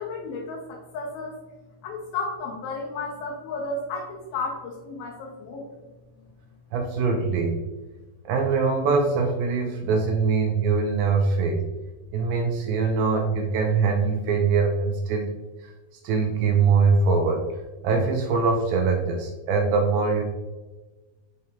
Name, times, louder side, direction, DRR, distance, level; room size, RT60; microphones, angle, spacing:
voice 1, 0.0-1.3 1.8-5.7, left 3 dB, 75° left, -1 dB, 2.4 m, -33 dB
voice 2, 6.7-7.6 8.3-11.6 12.1-15.3 15.6-15.7 16.0-17.5 17.8-20.2, right 4 dB, 85° right, 1 dB, 2.1 m, -23 dB
7.4 x 4.8 x 2.8 m, 1.2 s
omnidirectional pair, 4.7 m